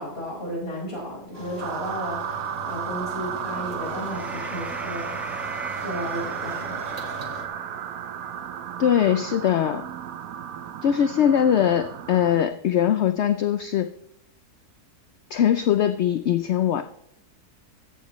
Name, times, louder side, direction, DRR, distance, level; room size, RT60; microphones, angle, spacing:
voice 1, 0.0-5.1 5.8-6.8, equal, 40° left, -4 dB, 5.1 m, -33 dB
sound 1, 1.3-7.5, right 1 dB, 50° right, 2.0 m, -39 dB
sound 2, 1.6-12.4, right 9 dB, 65° right, 1.1 m, -34 dB
sound 3, 2.9-9.4, equal, ahead, 0.4 m, -42 dB
voice 2, 8.8-9.8 10.8-13.9 15.3-16.8, left 9 dB, 65° left, 10 dB, 0.7 m, -21 dB
14.5 x 14.5 x 3.1 m, 0.76 s
omnidirectional pair, 1.7 m